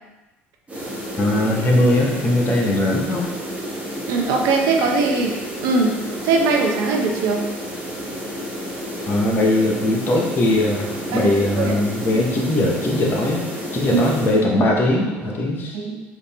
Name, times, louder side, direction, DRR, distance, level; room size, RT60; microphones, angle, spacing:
sound 1, 0.7-14.4, equal, 20° right, 1.3 m, -31 dB
voice 1, 1.2-3.3 9.1-15.8, left 1 dB, 40° left, -1 dB, 1.0 m, -20 dB
voice 2, 4.1-5.3 5.6-7.4 11.1-11.8 13.9-14.4 15.7-16.0, right 4 dB, 70° right, 1 dB, 0.7 m, -21 dB
sound 2, 9.7-15.4, equal, 15° left, 1.0 m, -37 dB
3.9 x 2.6 x 3.4 m, 1.1 s
hypercardioid pair, 80°, 6 cm